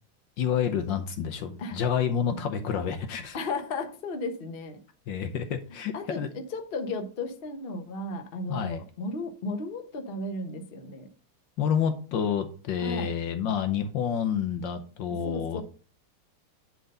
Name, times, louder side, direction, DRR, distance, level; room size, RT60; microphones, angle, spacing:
voice 1, 0.4-3.4 5.1-6.3 8.5-8.8 11.6-15.6, left 8 dB, 70° left, 1.4 m, -29 dB
voice 2, 3.3-4.8 5.9-11.1 12.8-13.1 15.2-15.6, left 2 dB, 35° left, 1.0 m, -34 dB
10.5 x 3.9 x 5.4 m
omnidirectional pair, 2.3 m